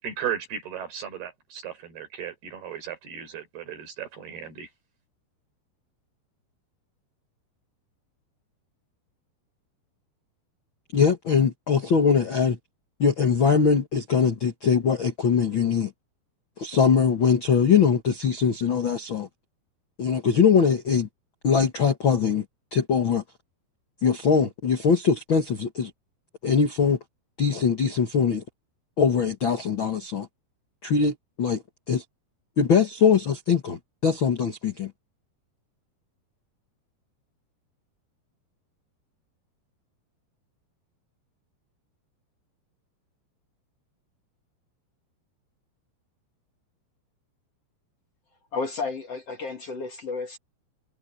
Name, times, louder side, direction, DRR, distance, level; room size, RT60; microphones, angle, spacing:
voice 1, 0.0-4.7, right 8 dB, 65° right, 7.3 m, -35 dB
voice 2, 10.9-12.6 13.0-15.9 16.6-19.3 20.0-21.1 21.4-22.4 22.7-23.2 24.0-25.9 26.4-27.0 27.4-28.4 29.0-30.3 30.8-31.6 31.9-32.0 32.6-34.9, left 6 dB, 70° left, 1.1 m, -22 dB
voice 3, 48.5-50.4, left 4 dB, 40° left, 3.1 m, -32 dB
omnidirectional pair, 4.9 m